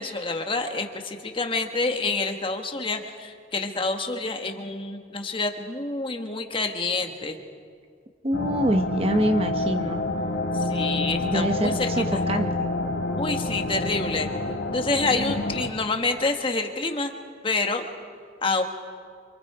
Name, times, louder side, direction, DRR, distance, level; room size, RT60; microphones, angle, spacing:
voice 1, 0.0-7.3 10.5-12.2 13.2-14.3 14.7-17.1 17.4-17.9 18.4-18.6, left 3 dB, 30° left, 5 dB, 1.4 m, -28 dB
voice 2, 8.2-10.0 11.2-12.7, right 1 dB, 30° right, 7 dB, 0.9 m, -25 dB
sound 1, 8.3-15.7, left 2 dB, 80° left, 2.5 m, -28 dB
28.0 x 26.0 x 4.9 m, 2.1 s
head